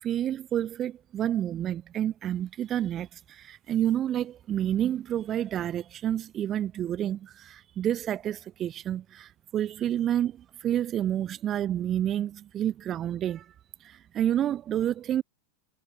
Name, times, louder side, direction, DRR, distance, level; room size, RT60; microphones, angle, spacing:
voice 1, 0.0-13.4 13.8-15.2, right 11 dB, 30° right, 1.2 m, -29 dB
figure-of-eight pair, 90°, 0 cm